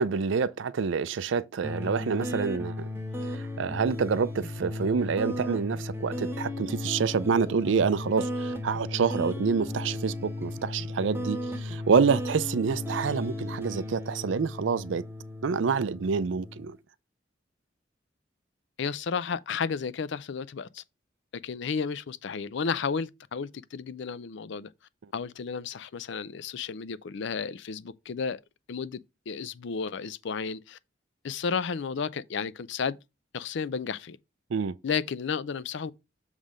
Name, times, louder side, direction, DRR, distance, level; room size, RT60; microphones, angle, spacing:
voice 1, 0.0-2.9 3.2-15.0 15.4-16.8 34.5-34.7, right 5 dB, 75° right, 0.4 m, -27 dB
sound 1, 1.6-16.7, left 1 dB, 15° right, 0.9 m, -35 dB
voice 2, 18.8-20.8 21.4-24.7 25.1-28.4 28.7-29.0 29.3-30.8 31.2-33.0 33.3-34.2 34.8-35.9, left 5 dB, 70° left, 0.5 m, -32 dB
7.4 x 3.3 x 5.0 m
head